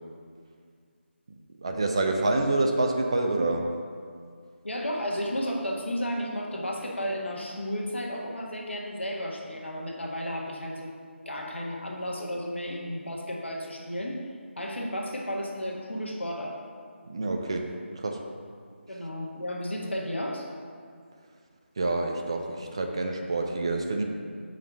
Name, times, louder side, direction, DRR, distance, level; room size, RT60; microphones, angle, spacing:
voice 1, 1.6-3.7 17.1-17.6 18.0-18.2 21.8-24.0, right 2 dB, 25° right, 3 dB, 0.4 m, -27 dB
voice 2, 4.6-10.9 11.2-14.2 14.6-16.6 18.9-20.5, equal, 65° left, -1 dB, 1.6 m, -33 dB
7.0 x 5.1 x 5.4 m, 2.1 s
figure-of-eight pair, 160°, 7 cm